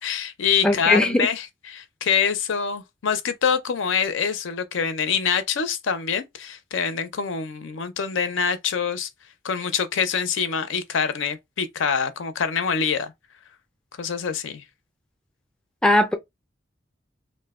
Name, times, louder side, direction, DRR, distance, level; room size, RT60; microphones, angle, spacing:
voice 1, 0.0-9.1 9.4-13.1 14.0-14.6, left 6 dB, 70° left, 0.5 m, -25 dB
voice 2, 0.6-1.3 15.8-16.1, left 1 dB, 5° left, 0.4 m, -19 dB
2.6 x 2.1 x 3.4 m
head